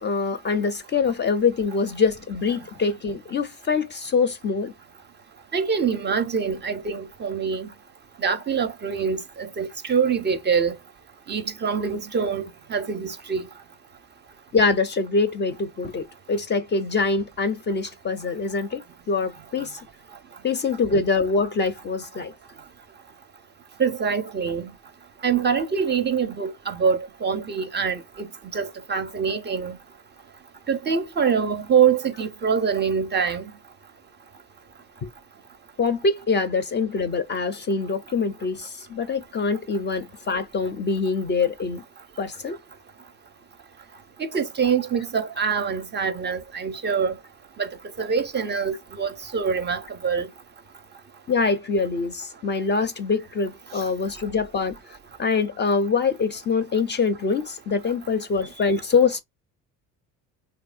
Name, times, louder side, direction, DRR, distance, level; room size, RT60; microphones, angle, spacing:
voice 1, 0.0-4.7 14.5-19.8 20.4-22.3 35.0-35.1 35.8-41.8 42.2-42.6 51.3-54.8 55.2-59.2, left 4 dB, 30° left, 0.4 m, -24 dB
voice 2, 5.5-7.7 8.2-10.7 11.3-12.5 12.7-13.4 23.8-24.7 25.2-28.0 28.5-29.8 30.7-33.4 44.3-47.1 47.6-47.7 48.0-50.3, right 6 dB, 30° right, 0.4 m, -24 dB
2.7 x 2.1 x 2.4 m
supercardioid pair, 85°, 38 cm